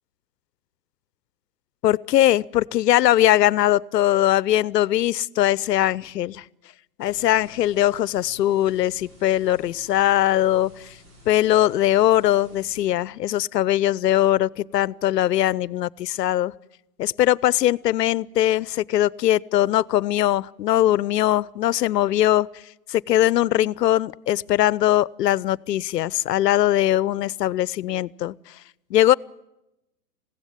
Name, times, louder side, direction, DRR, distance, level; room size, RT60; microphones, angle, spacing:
voice 1, 1.8-6.4 7.0-10.9 11.3-16.5 17.0-22.5 22.9-28.3 28.9-29.1, left 13 dB, 80° left, 0.7 m, -21 dB
sound 1, 7.0-12.9, left 1 dB, 70° right, 6.7 m, -51 dB
20.5 x 16.0 x 9.2 m
hypercardioid pair, 130°, 48 cm